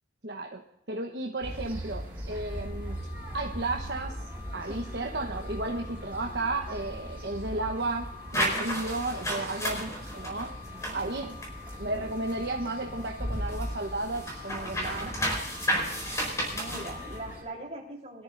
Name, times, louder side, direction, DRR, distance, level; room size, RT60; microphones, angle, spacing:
voice 1, 0.2-0.6 0.9-3.0 3.3-4.2 4.5-10.5 10.9-11.3 11.8-15.1, right 2 dB, 60° right, 0 dB, 1.1 m, -33 dB
sound 1, 1.4-17.4, equal, 10° right, 4.8 m, -40 dB
sound 2, 2.5-17.3, left 9 dB, 35° left, 4.1 m, -49 dB
sound 3, 8.3-12.5 12.9-17.2, equal, 15° left, 4.5 m, -32 dB
voice 2, 9.3-9.8 10.6-11.0 16.5-18.2, right 1 dB, 35° right, -2 dB, 3.8 m, -42 dB
23.0 x 13.5 x 2.7 m, 0.82 s
head